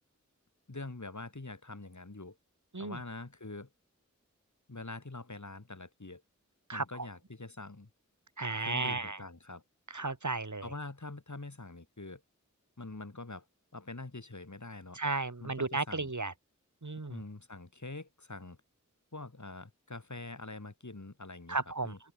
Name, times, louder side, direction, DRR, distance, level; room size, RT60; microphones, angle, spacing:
voice 1, 0.7-2.4 2.8-3.7 4.7-6.2 6.7-7.9 8.6-9.6 10.6-12.2 12.8-13.4 13.7-15.0 15.4-16.1 17.1-18.6 19.1-21.6 21.8-22.0, left 2 dB, 70° left, 6.7 m, -44 dB
voice 2, 6.7-7.1 8.4-9.2 9.9-10.7 14.9-16.3 16.8-17.2 21.5-21.9, right 3 dB, 70° right, 3.8 m, -34 dB
open air
wide cardioid pair, 40°, 30 cm